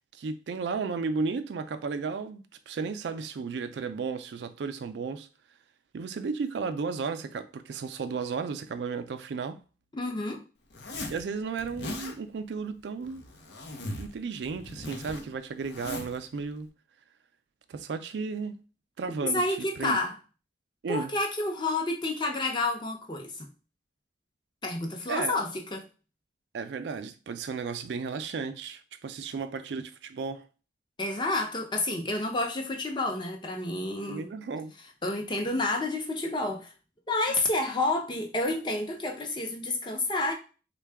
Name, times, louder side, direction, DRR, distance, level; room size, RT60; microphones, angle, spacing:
voice 1, 0.1-5.3 5.9-9.6 11.1-13.2 14.0-16.7 17.7-18.6 19.0-20.0 20.8-21.1 25.1-25.4 26.5-30.5 34.1-34.7, right 4 dB, 75° right, 0.4 m, -34 dB
voice 2, 9.9-10.4 19.2-20.1 20.9-23.5 24.6-25.9 31.0-34.3 35.0-36.7 37.1-40.3, left 2 dB, 25° left, 0.6 m, -29 dB
Zipper (clothing), 10.7-11.2 11.6-12.2 13.0-14.1 14.4-16.2, left 2 dB, 70° left, 0.7 m, -39 dB
3.6 x 2.2 x 3.4 m
head